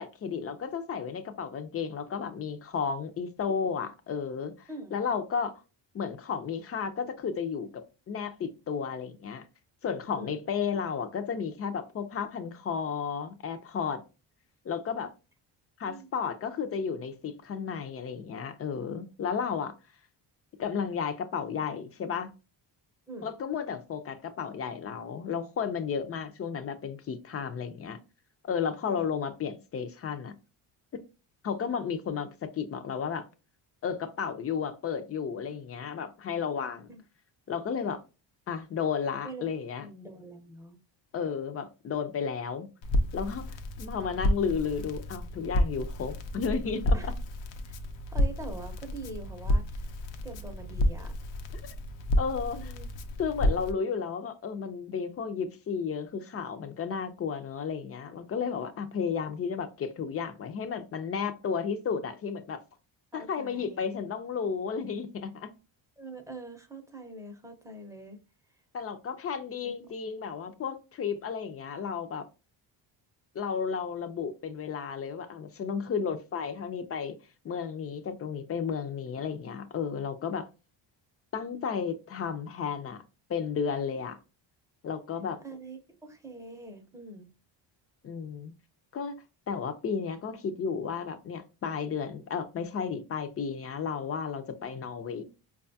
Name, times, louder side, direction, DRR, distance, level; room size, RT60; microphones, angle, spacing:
voice 1, 0.0-4.5 4.9-5.6 5.9-9.4 9.8-14.0 14.7-15.1 15.8-19.7 20.6-22.3 23.2-28.0 28.4-30.3 31.4-33.2 33.8-36.9 37.5-38.0 38.5-39.9 41.1-42.7 43.1-47.1 52.2-52.7 53.2-62.6 63.1-65.5 68.7-72.2 73.3-77.1 77.4-80.5 81.3-83.0 83.3-84.2 84.8-85.4 88.0-88.5 88.9-95.2, left 6 dB, 35° left, 0.5 m, -33 dB
voice 2, 4.7-5.0 10.2-10.4 15.9-16.1 23.1-23.3 28.9-29.1 36.9-37.0 39.2-39.5 39.8-40.8 46.9-47.1 47.7-47.8 48.1-49.9 50.2-51.1 52.5-52.9 63.1-63.8 66.0-68.2 69.6-69.7 85.4-87.3, right 2 dB, 5° right, 0.6 m, -44 dB
Crackle, 42.8-53.7, left 1 dB, 75° left, 0.6 m, -30 dB
4.8 x 2.3 x 2.6 m
cardioid pair, 130°, 45 cm